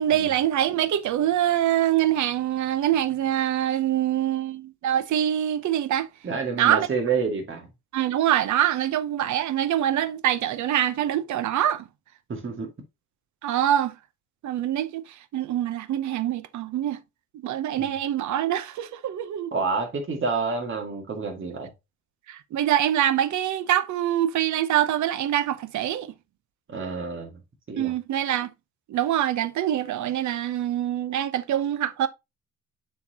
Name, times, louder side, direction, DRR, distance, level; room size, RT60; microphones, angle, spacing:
voice 1, 0.0-6.1 6.5-6.9 7.9-11.8 13.4-13.9 14.4-15.0 15.3-17.0 17.4-19.5 22.3-26.1 27.8-28.5 28.9-32.1, right 11 dB, 70° right, 0.9 m, -24 dB
voice 2, 6.2-7.7 12.3-12.7 17.8-17.9 19.5-21.7 26.7-27.3 27.7-27.9, right 4 dB, 40° right, 2.1 m, -28 dB
7.3 x 4.6 x 2.9 m
cardioid pair, 90°, 30 cm